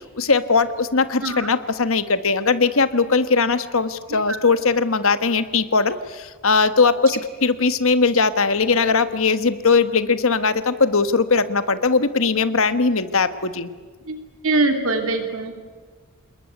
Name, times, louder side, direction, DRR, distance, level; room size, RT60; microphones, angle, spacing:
voice 1, 0.0-13.7, left 4 dB, 65° left, 11 dB, 1.4 m, -20 dB
voice 2, 14.1-15.5, right 2 dB, 70° right, 6 dB, 2.8 m, -23 dB
27.5 x 21.5 x 9.4 m, 1.5 s
head